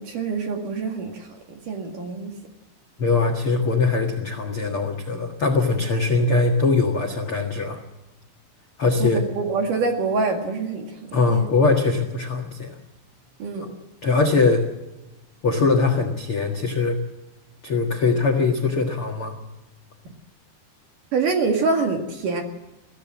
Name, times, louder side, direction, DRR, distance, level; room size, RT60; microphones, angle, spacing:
voice 1, 0.0-2.3 9.0-11.5 13.4-13.7 21.1-22.4, right 4 dB, 55° right, 4 dB, 3.0 m, -25 dB
voice 2, 3.0-7.8 8.8-9.2 11.1-12.8 13.6-13.7 14.0-14.6 15.4-17.0 17.6-19.3, left 3 dB, 70° left, 2 dB, 1.3 m, -21 dB
23.0 x 16.0 x 7.5 m, 1.0 s
omnidirectional pair, 5.5 m